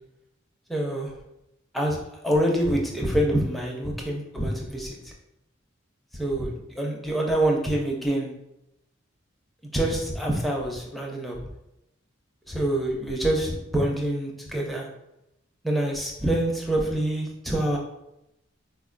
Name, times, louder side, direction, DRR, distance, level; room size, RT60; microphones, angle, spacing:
voice 1, 0.7-1.1 1.7-2.0 2.2-5.0 6.2-8.3 9.7-11.5 12.5-14.9 15.6-17.8, right 1 dB, ahead, -2 dB, 0.4 m, -26 dB
4.2 x 2.2 x 2.4 m, 0.87 s
head